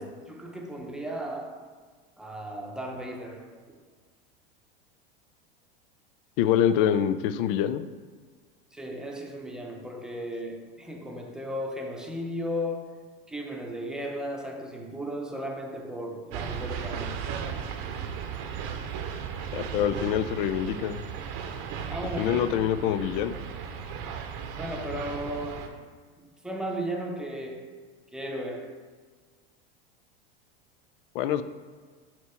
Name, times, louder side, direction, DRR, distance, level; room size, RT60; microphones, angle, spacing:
voice 1, 0.0-1.7 2.2-3.8 8.7-13.0 13.3-17.2 21.9-22.5 24.6-25.9 26.2-27.8 28.1-28.8, equal, ahead, 1 dB, 0.8 m, -35 dB
voice 2, 6.4-7.9 19.5-21.1 22.2-23.4 31.1-31.4, left 10 dB, 60° left, 12 dB, 0.5 m, -25 dB
sound 1, 16.3-25.7, right 7 dB, 55° right, 0.8 m, -36 dB
7.3 x 3.0 x 4.4 m, 1.5 s
hypercardioid pair, 100°, 30 cm